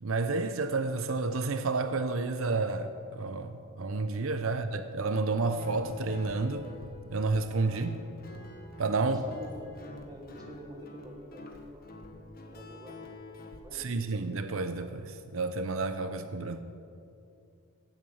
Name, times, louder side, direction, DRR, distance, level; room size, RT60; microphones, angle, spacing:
voice 1, 0.0-6.7 7.1-8.0 8.8-9.2 13.7-16.6, right 3 dB, 80° right, 9 dB, 0.7 m, -30 dB
Guitar, 5.3-13.6, left 1 dB, 45° left, 1.4 m, -47 dB
voice 2, 9.1-11.8 12.5-13.0 13.6-13.9, right 1 dB, 20° right, 1 dB, 1.7 m, -49 dB
16.5 x 7.9 x 7.1 m, 2.5 s
head